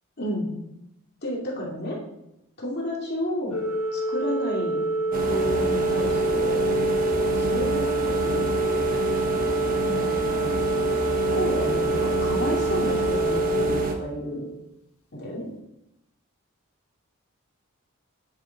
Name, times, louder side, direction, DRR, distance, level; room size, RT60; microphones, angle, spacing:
voice 1, 0.2-0.5 1.2-2.0 2.6-3.6 3.9-4.8 5.1-6.7 7.4-8.5 9.8-10.5 11.3-14.5 15.1-15.5, equal, 45° left, -3 dB, 2.7 m, -31 dB
Organ, 3.5-14.6, right 2 dB, 70° left, 1.5 m, -26 dB
sound 1, 5.1-13.9, right 1 dB, 40° right, 1.1 m, -29 dB
9.6 x 8.7 x 4.1 m, 0.83 s
head